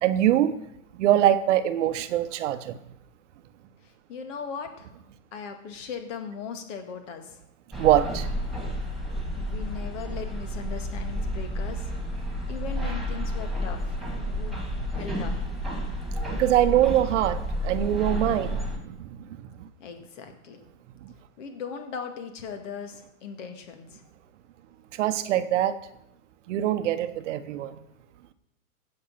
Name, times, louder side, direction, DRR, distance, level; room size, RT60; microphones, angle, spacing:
voice 1, 0.0-0.6 0.9-2.8 7.8-8.3 16.3-19.7 21.0-21.1 24.9-25.8 26.5-27.8, right 12 dB, 55° right, 11 dB, 1.0 m, -24 dB
voice 2, 3.8-4.9 5.3-7.4 9.4-11.9 12.5-14.0 14.2-14.7 14.9-15.5 19.8-20.6 21.4-24.0, left 6 dB, 55° left, 6 dB, 2.2 m, -38 dB
sound 1, 7.7-18.8, equal, ahead, 2.6 m, -31 dB
16.0 x 5.6 x 5.5 m, 0.83 s
hypercardioid pair, 110°, 44 cm